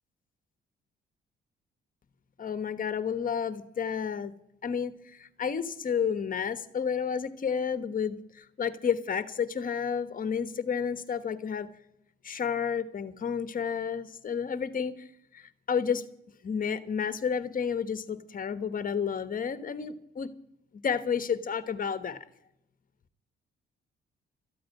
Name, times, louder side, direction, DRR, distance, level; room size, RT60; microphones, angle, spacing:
voice 1, 2.4-4.3 4.6-11.7 12.2-16.0 16.4-20.3 20.8-22.2, left 7 dB, 45° left, 12 dB, 1.3 m, -31 dB
14.0 x 8.6 x 9.4 m, 0.81 s
cardioid pair, 90°, 20 cm